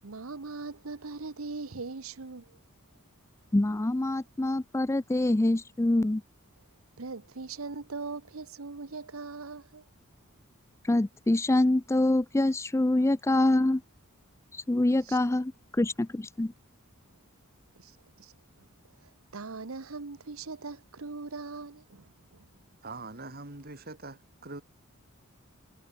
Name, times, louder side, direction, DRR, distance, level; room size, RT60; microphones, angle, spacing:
voice 1, 0.0-2.6 7.0-9.9 15.0-15.4 17.7-22.7, right 4 dB, 80° right, 1.0 m, -41 dB
voice 2, 3.5-6.2 10.8-13.8 14.5-16.5, left 1 dB, 15° left, 0.4 m, -25 dB
voice 3, 22.8-24.6, right 3 dB, 45° right, 2.9 m, -43 dB
head